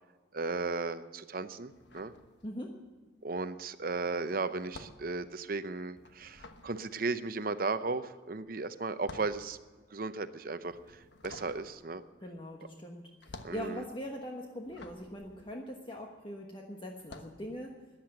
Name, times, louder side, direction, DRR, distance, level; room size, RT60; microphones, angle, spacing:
voice 1, 0.3-2.1 3.2-9.6 9.9-10.8 11.2-12.0 13.4-13.8, right 3 dB, 50° right, 12 dB, 0.7 m, -35 dB
sound 1, 1.7-2.9 3.2-16.4 16.9-17.4, left 2 dB, 75° left, 1.2 m, -52 dB
voice 2, 2.4-2.8 12.2-17.8, equal, 30° left, 1 dB, 1.3 m, -42 dB
14.0 x 10.5 x 7.7 m, 1.4 s
head